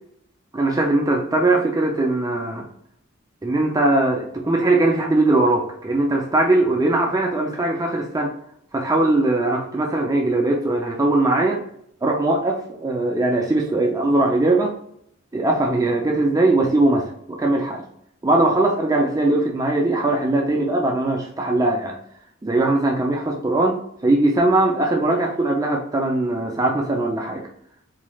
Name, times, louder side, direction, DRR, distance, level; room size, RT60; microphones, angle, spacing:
voice 1, 0.5-2.6 3.4-8.3 8.7-11.6 12.0-14.7 15.3-17.8 18.2-22.0 22.4-23.8 24.0-27.5, right 2 dB, 15° right, 0 dB, 0.4 m, -20 dB
4.0 x 3.1 x 2.3 m, 0.71 s
head